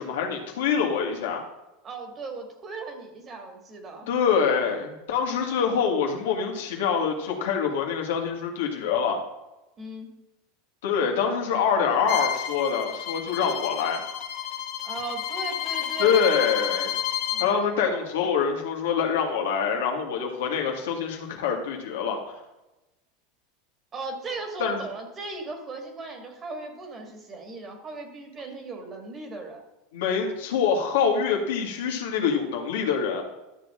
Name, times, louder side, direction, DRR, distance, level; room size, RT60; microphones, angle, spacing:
voice 1, 0.0-1.4 4.1-9.2 10.8-14.0 16.0-17.0 17.4-22.4 24.6-24.8 29.9-33.2, left 6 dB, 85° left, 2 dB, 2.0 m, -25 dB
voice 2, 1.8-4.1 9.8-10.1 14.8-16.3 17.3-17.7 23.9-29.6, right 3 dB, 30° right, 4 dB, 2.0 m, -37 dB
Bowed string instrument, 12.1-17.5, left 10 dB, 50° left, 0.9 m, -31 dB
12.0 x 6.5 x 3.7 m, 0.97 s
supercardioid pair, 135°, 0 cm